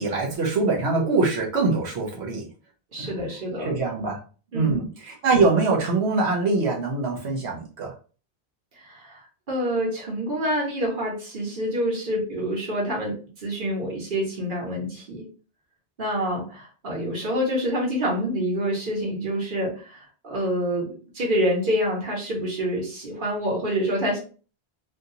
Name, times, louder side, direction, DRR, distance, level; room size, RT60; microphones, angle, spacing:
voice 1, 0.0-2.4 3.0-3.1 3.6-4.2 4.5-7.9, right 3 dB, 90° right, 0 dB, 1.2 m, -23 dB
voice 2, 2.9-3.7 4.5-4.8 8.8-9.2 9.5-15.2 16.0-24.2, equal, 50° right, -2 dB, 1.4 m, -27 dB
3.4 x 2.5 x 2.7 m, 0.37 s
omnidirectional pair, 1.1 m